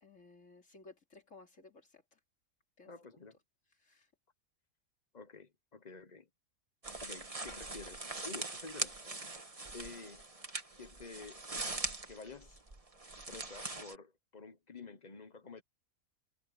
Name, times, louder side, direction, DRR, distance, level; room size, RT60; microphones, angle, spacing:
voice 1, 0.0-2.0 2.8-2.9 3.8-4.1, left 3 dB, 60° left, 3.5 m, -57 dB
voice 2, 2.9-3.4 5.1-6.3 7.0-9.3 9.7-10.3 10.8-11.4 11.8-12.6 13.3-15.6, left 4 dB, 35° left, 1.1 m, -50 dB
sound 1, 6.8-14.0, right 2 dB, 25° right, 1.7 m, -42 dB
omnidirectional pair, 1.4 m